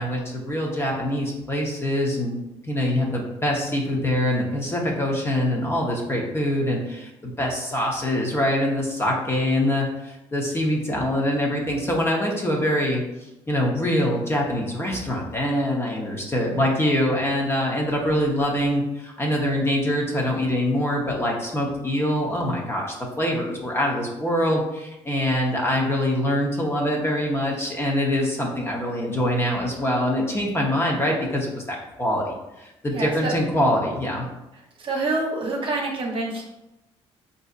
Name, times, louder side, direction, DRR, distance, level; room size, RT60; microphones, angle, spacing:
voice 1, 0.0-2.4 2.7-13.0 13.5-34.3, left 1 dB, 20° left, -2 dB, 0.8 m, -24 dB
voice 2, 32.9-33.3 34.8-36.4, right 2 dB, 45° right, -1 dB, 0.9 m, -26 dB
4.1 x 2.7 x 2.4 m, 0.94 s
cardioid pair, 80°, 12 cm